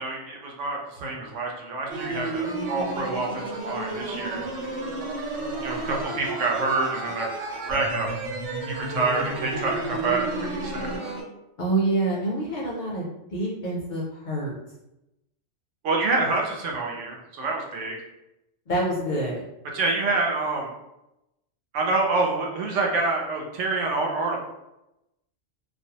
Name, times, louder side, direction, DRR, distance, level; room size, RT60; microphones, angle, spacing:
voice 1, 0.0-4.5 5.6-7.3 7.7-8.1 8.6-11.0 15.8-18.0 19.7-20.7 21.7-24.4, right 3 dB, 90° right, 0 dB, 1.0 m, -27 dB
sound 1, 1.9-11.2, right 2 dB, 50° right, 0.6 m, -32 dB
voice 2, 11.6-14.5 18.7-19.4, right 2 dB, 60° left, -4 dB, 0.5 m, -27 dB
2.5 x 2.0 x 2.7 m, 0.90 s
omnidirectional pair, 1.2 m